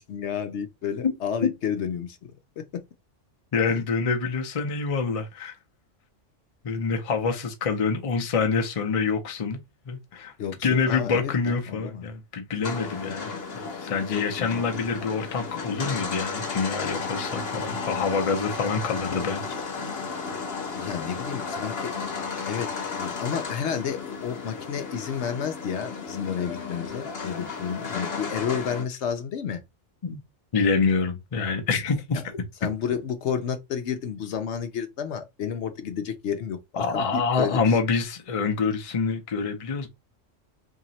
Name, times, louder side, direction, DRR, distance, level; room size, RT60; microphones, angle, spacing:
voice 1, 0.0-2.8 3.7-3.8 10.4-12.1 13.1-13.2 14.1-14.8 20.7-22.0 22.5-22.7 23.0-29.6 32.6-37.8, left 7 dB, 70° left, 0.9 m, -31 dB
voice 2, 3.5-5.5 6.6-9.6 9.9-10.3 10.6-13.3 13.6-19.4 22.5-22.6 30.0-30.2 30.5-32.4 36.8-39.9, left 5 dB, 35° left, 0.6 m, -26 dB
sound 1, 12.6-28.8, left 4 dB, 55° left, 1.2 m, -34 dB
2.9 x 2.8 x 4.0 m
omnidirectional pair, 1.2 m